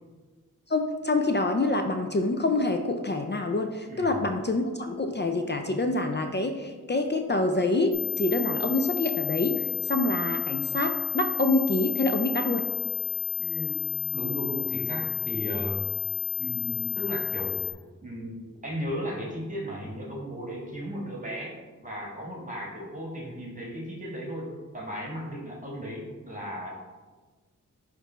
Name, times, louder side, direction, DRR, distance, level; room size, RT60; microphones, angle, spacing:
voice 1, 0.7-12.7, left 2 dB, 30° left, 5 dB, 0.5 m, -26 dB
sound 1, 7.9-17.7, left 10 dB, 65° left, 1.5 m, -31 dB
voice 2, 13.4-13.9 14.1-15.8 16.4-17.7 18.0-26.7, equal, 25° right, -3 dB, 1.7 m, -35 dB
9.6 x 3.3 x 3.3 m, 1.3 s
cardioid pair, 40°, 33 cm